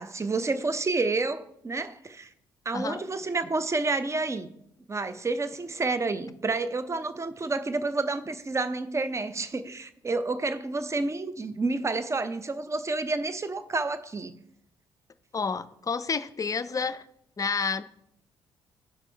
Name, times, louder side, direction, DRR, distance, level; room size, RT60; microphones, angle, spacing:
voice 1, 0.0-2.3 2.6-4.5 4.9-14.4, right 3 dB, 20° right, 0.7 m, -29 dB
voice 2, 15.3-17.0 17.4-17.8, left 5 dB, 25° left, 0.6 m, -29 dB
15.5 x 6.0 x 3.3 m
figure-of-eight pair, 45°, 13 cm